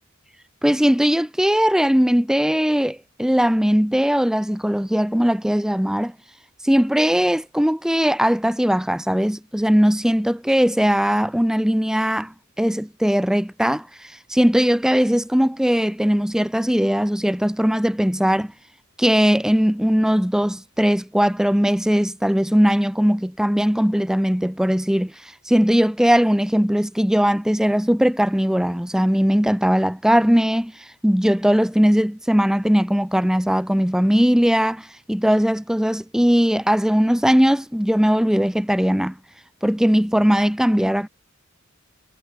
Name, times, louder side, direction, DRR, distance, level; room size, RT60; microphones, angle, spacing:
voice 1, 0.6-6.1 6.6-18.5 19.0-25.1 25.5-30.7 31.0-39.1 39.6-41.1, equal, 5° right, 0.7 m, -19 dB
head